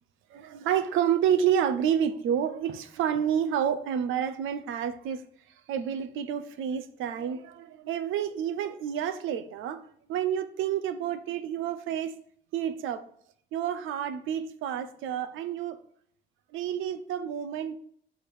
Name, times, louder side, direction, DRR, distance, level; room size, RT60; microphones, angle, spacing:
voice 1, 0.3-5.2 5.7-9.8 10.1-12.1 12.5-13.0 13.5-15.8 16.5-17.8, right 9 dB, 90° right, 0.7 m, -29 dB
6.5 x 3.6 x 6.1 m
cardioid pair, 90°, 20 cm